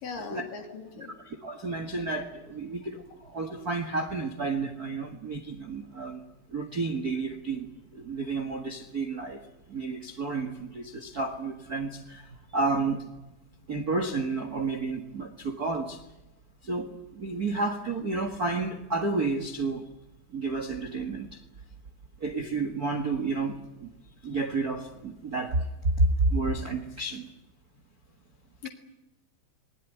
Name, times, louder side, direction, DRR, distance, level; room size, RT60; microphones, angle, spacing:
voice 1, 0.0-1.2 28.6-28.7, left 5 dB, 60° left, 3 dB, 4.6 m, -39 dB
voice 2, 1.2-6.2 6.5-7.7 7.9-9.4 9.7-13.1 13.7-16.0 16.6-19.9 20.3-21.4 22.2-23.9 24.2-27.3, right 3 dB, 45° right, 6 dB, 1.2 m, -31 dB
27.5 x 21.0 x 9.5 m, 0.99 s
omnidirectional pair, 4.5 m